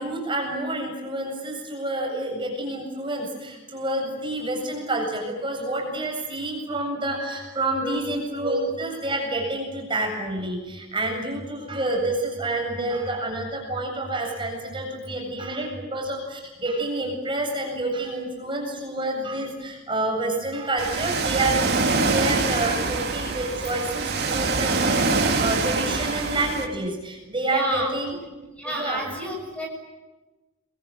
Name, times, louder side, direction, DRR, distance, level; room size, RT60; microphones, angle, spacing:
voice 1, 0.0-28.2 28.6-29.0, right 2 dB, 25° right, 1 dB, 7.8 m, -28 dB
Ocean, 20.8-26.6, right 3 dB, 50° right, 4.0 m, -24 dB
voice 2, 27.5-27.9 28.6-29.7, right 1 dB, 5° left, 0 dB, 7.5 m, -30 dB
28.0 x 22.5 x 9.1 m, 1.1 s
head